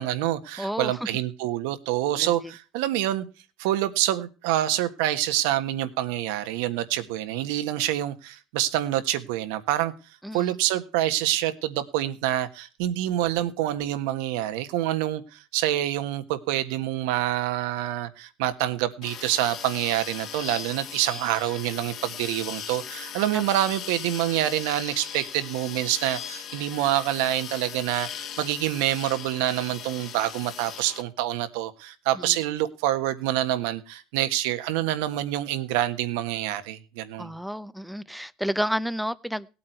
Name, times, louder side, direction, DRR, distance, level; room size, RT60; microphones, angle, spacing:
voice 1, 0.0-3.2 3.6-9.9 10.3-37.3, right 13 dB, 80° right, 1.5 m, -27 dB
voice 2, 0.6-0.9 2.2-2.3 10.2-10.6 23.3-23.4 32.1-32.4 37.2-39.5, equal, ahead, 0.6 m, -31 dB
sound 1, 19.0-31.0, left 9 dB, 45° left, 1.7 m, -38 dB
18.0 x 8.7 x 4.5 m
cardioid pair, 145°, 0 cm